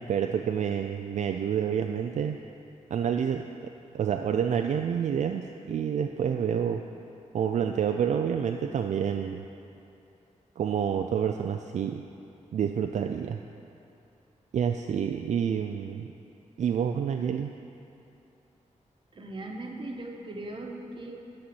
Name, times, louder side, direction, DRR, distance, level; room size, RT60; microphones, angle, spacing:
voice 1, 0.0-2.4 2.9-3.5 3.9-6.8 7.3-9.4 10.6-12.0 12.5-13.4 14.5-16.1 16.6-17.5, right 8 dB, 70° right, 5 dB, 0.4 m, -28 dB
voice 2, 19.1-21.1, right 2 dB, 40° right, 1 dB, 1.1 m, -38 dB
13.0 x 4.3 x 7.7 m, 2.8 s
wide cardioid pair, 170°, 13 cm